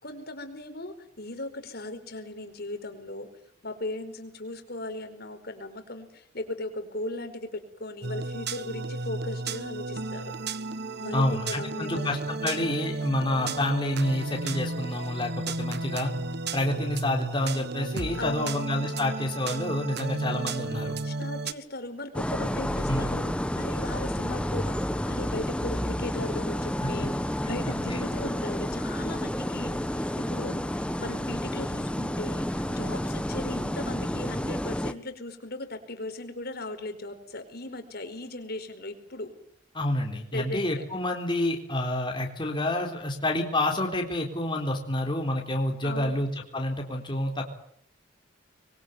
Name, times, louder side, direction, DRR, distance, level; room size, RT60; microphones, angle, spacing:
voice 1, 0.0-3.3 3.6-10.3 11.0-12.2 13.4-13.6 18.1-18.6 21.0-39.3 40.3-40.9 45.8-46.2, left 2 dB, 55° left, 7 dB, 4.9 m, -38 dB
sound 1, 8.0-21.5, right 3 dB, 55° right, 1.3 m, -34 dB
voice 2, 11.1-16.1 16.5-20.9 22.9-23.1 26.8-27.1 27.6-28.0 39.7-47.6, left 1 dB, 25° left, 2 dB, 3.8 m, -28 dB
sound 2, 22.1-34.9, equal, 5° left, 1.2 m, -30 dB
26.0 x 23.0 x 9.3 m, 0.67 s
head